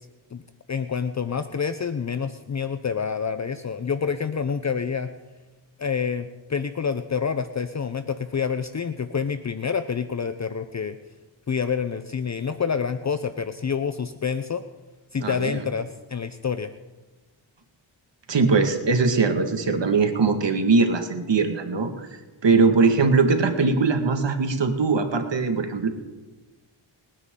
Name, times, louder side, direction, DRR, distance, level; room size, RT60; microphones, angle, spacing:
voice 1, 0.7-5.1 5.8-11.0 11.5-14.6 15.1-16.7, left 6 dB, 35° left, 10 dB, 0.7 m, -27 dB
voice 2, 15.2-15.7 18.3-22.1 22.4-25.9, right 4 dB, 65° right, 6 dB, 2.0 m, -21 dB
28.0 x 10.0 x 3.8 m, 1.2 s
cardioid pair, 55°, 46 cm